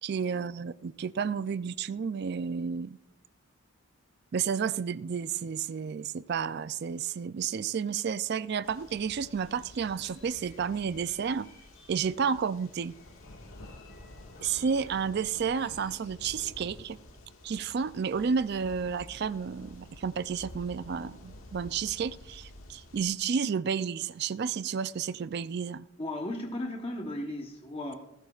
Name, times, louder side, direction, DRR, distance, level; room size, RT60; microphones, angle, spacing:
voice 1, 0.0-3.0 4.3-11.5 11.9-12.9 14.4-17.0 17.4-25.9, right 6 dB, 50° right, 0.3 m, -31 dB
sound 1, 8.6-23.0, left 1 dB, 75° left, 1.7 m, -50 dB
sound 2, 8.7-16.1, left 3 dB, 60° left, 5.8 m, -58 dB
voice 2, 26.0-27.9, left 1 dB, 25° left, 1.0 m, -35 dB
19.0 x 15.5 x 2.4 m
head